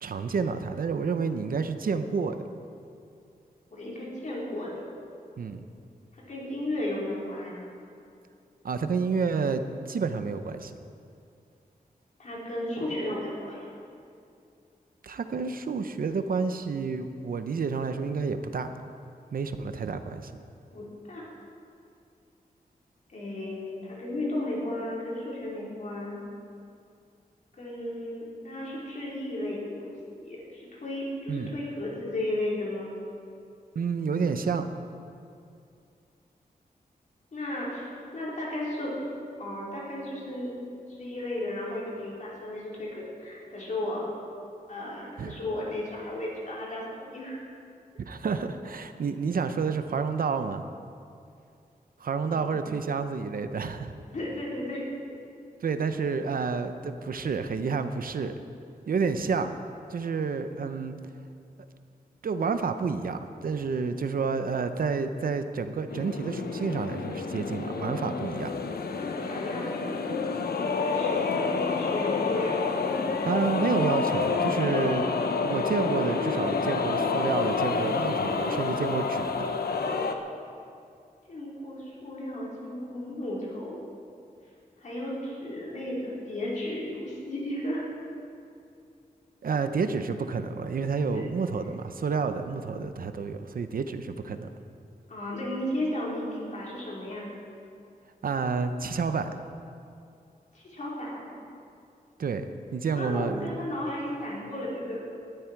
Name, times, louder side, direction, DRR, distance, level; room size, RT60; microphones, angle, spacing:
voice 1, 0.0-2.4 5.4-5.6 8.6-10.7 15.0-18.7 19.3-20.4 31.3-31.5 33.7-34.7 45.2-45.4 48.0-50.6 52.0-53.9 55.6-58.3 58.9-59.5 59.9-61.0 62.2-68.5 73.2-75.0 75.4-79.5 89.4-94.5 98.2-99.3 102.2-102.5 102.7-103.6, right 5 dB, 65° right, 9 dB, 0.8 m, -29 dB
voice 2, 3.7-4.7 6.3-7.6 12.2-13.7 20.7-21.3 23.1-26.2 27.6-32.9 37.3-38.9 39.4-40.5 40.9-44.0 44.7-47.5 52.2-52.6 54.0-54.8 68.9-70.5 70.8-71.2 71.6-72.6 81.3-83.8 84.8-87.8 91.0-91.2 95.1-97.3 100.5-101.3 102.9-105.1, left 1 dB, 50° left, -5 dB, 4.5 m, -34 dB
sound 1, 65.9-80.1, left 4 dB, 85° left, 1.0 m, -28 dB
19.0 x 12.5 x 4.7 m, 2.5 s
wide cardioid pair, 160°, 16 cm